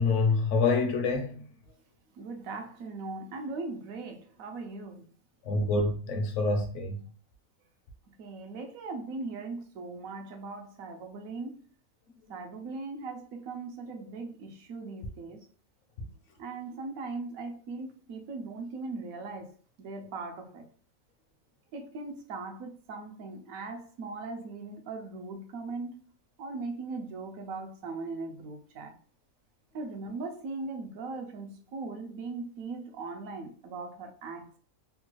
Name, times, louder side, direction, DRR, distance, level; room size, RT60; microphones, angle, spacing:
voice 1, 0.0-1.4 5.4-7.0 14.0-14.1 16.0-16.1, left 3 dB, 65° left, 0.9 m, -27 dB
voice 2, 2.2-5.1 8.2-11.6 12.3-15.5 16.4-19.5 19.8-20.7 21.7-25.9 26.4-28.9 29.7-34.6, right 3 dB, 80° right, 1.1 m, -39 dB
3.3 x 2.2 x 3.0 m
omnidirectional pair, 1.4 m